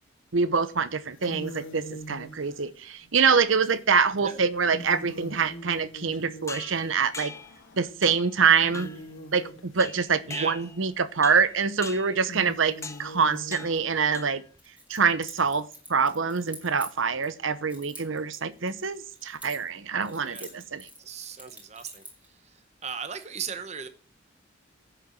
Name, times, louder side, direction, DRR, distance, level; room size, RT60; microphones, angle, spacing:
voice 1, 0.3-7.3 7.8-8.9 9.3-14.4 14.9-20.9, right 5 dB, 75° right, 0.8 m, -25 dB
sound 1, 1.1-8.1 8.4-14.2, right 1 dB, 75° left, 1.6 m, -44 dB
sound 2, 6.5-7.6 8.0-8.4 8.7-9.1 9.8-10.9 11.2-11.5 11.8-12.2 12.8-13.1 13.5-13.8 14.1-14.6, left 4 dB, 15° left, 0.6 m, -41 dB
voice 2, 10.3-10.6 20.2-20.5 21.0-22.0 22.8-23.9, right 6 dB, 35° right, 0.9 m, -37 dB
Keys jangling, 14.6-17.3 17.7-19.8 20.0-22.3, equal, 5° right, 3.0 m, -46 dB
11.0 x 6.7 x 7.5 m
head